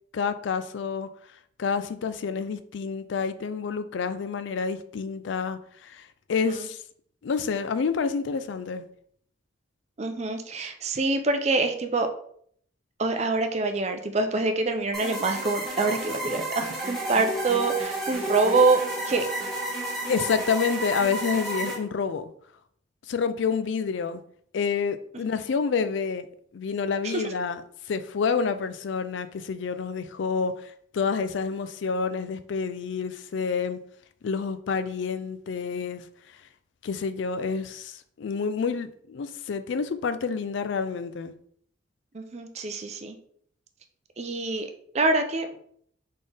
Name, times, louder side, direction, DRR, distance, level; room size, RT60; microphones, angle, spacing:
voice 1, 0.1-1.1 1.6-6.8 7.2-8.9 20.1-22.3 23.1-24.2 24.5-26.3 26.5-27.6 27.9-33.8 34.2-36.4 36.8-41.3, left 5 dB, 65° left, 0.3 m, -28 dB
voice 2, 10.0-12.1 13.0-19.3 27.0-27.2 42.1-43.2 44.2-44.7 44.9-45.5, right 3 dB, 35° right, 0.5 m, -25 dB
sound 1, 14.9-21.8, right 1 dB, ahead, 1.1 m, -31 dB
4.1 x 3.6 x 3.3 m
head